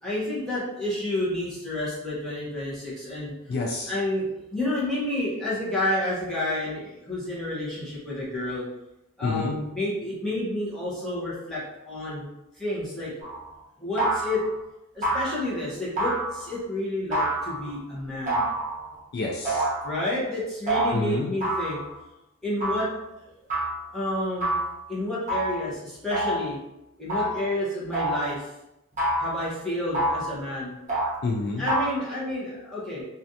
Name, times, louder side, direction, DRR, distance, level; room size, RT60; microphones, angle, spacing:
voice 1, 0.0-3.3 3.9-8.6 9.2-12.2 12.6-13.1 13.8-14.4 14.9-18.5 19.8-21.8 22.4-22.9 23.2-23.3 23.9-24.5 24.9-26.6 27.0-28.5 29.2-30.8 31.6-33.0, left 1 dB, ahead, -9 dB, 0.9 m, -30 dB
voice 2, 3.5-3.9 9.2-9.6 19.1-19.6 20.9-21.3 31.2-31.7, left 3 dB, 45° left, -1 dB, 0.3 m, -28 dB
sound 1, 13.2-13.5 14.0-14.5 15.0-15.5 16.0-16.6 17.1-17.7 18.3-19.0 19.4-20.0 20.7-20.9 21.4-22.0 22.6-22.9 23.5-23.8 24.4-24.8 25.3-25.6 26.1-26.5 27.1-27.5 27.9-28.3 29.0-29.4 29.9-30.3 30.9-31.2 31.7-31.9, right 1 dB, 35° right, 0.9 m, -27 dB
3.3 x 2.4 x 2.7 m, 0.93 s
head